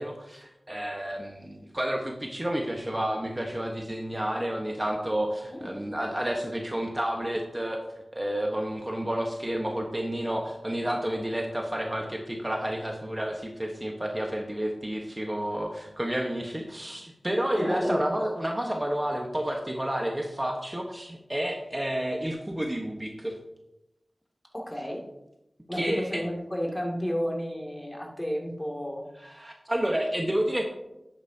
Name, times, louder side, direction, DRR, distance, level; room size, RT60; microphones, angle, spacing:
voice 1, 0.0-7.8 8.1-23.3 25.7-26.2 29.2-30.6, right 1 dB, 20° right, 1 dB, 1.2 m, -30 dB
voice 2, 17.5-18.1 24.5-25.0 25.7-29.0, equal, 20° left, -1 dB, 2.5 m, -31 dB
11.0 x 8.9 x 2.8 m, 0.89 s
wide cardioid pair, 50°, 0 cm